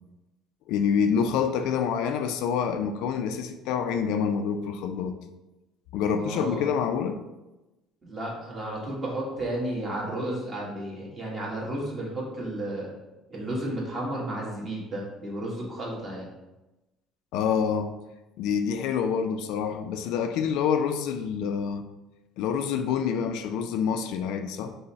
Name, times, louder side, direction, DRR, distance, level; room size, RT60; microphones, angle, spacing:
voice 1, 0.7-5.2 5.9-7.2 17.3-18.0 18.4-21.8 22.4-24.8, left 7 dB, 80° left, 0.3 m, -27 dB
voice 2, 6.1-6.7 8.0-12.9 13.3-16.3, right 1 dB, 25° right, 1.3 m, -33 dB
5.3 x 2.1 x 4.1 m
cardioid pair, 130°, 0 cm